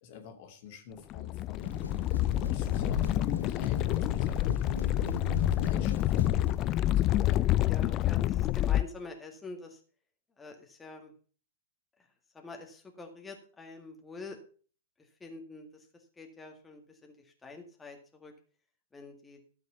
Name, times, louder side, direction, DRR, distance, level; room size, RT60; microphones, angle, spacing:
voice 1, 0.0-1.7 2.1-4.8 5.4-6.4 6.8-7.4, left 6 dB, 50° left, 5 dB, 2.3 m, -47 dB
sound 1, 1.1-8.8, left 14 dB, 35° left, 0.4 m, -28 dB
sound 2, 1.6-6.6, left 3 dB, 85° left, 1.0 m, -38 dB
voice 2, 7.7-9.8 10.4-11.1 12.4-14.4 15.2-15.9 16.2-17.1 17.4-18.3 18.9-19.4, left 3 dB, 10° left, 2 dB, 1.9 m, -46 dB
12.5 x 6.6 x 5.6 m, 0.41 s
hypercardioid pair, 110°, 0 cm